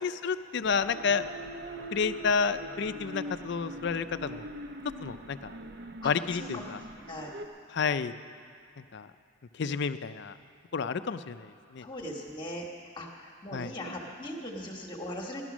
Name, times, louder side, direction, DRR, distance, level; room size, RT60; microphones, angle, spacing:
voice 1, 0.0-1.2 1.9-4.5 5.0-5.5 6.0-6.8 7.7-8.1 8.9-9.1 9.6-10.3 10.7-11.8 13.5-13.7, left 5 dB, 55° left, 12 dB, 0.4 m, -30 dB
sound 1, 0.6-7.5, right 1 dB, 50° right, 0.6 m, -42 dB
voice 2, 11.8-12.7 13.0-13.1 13.4-15.4, left 1 dB, 20° left, -2 dB, 1.4 m, -39 dB
15.5 x 11.5 x 6.1 m, 2.3 s
head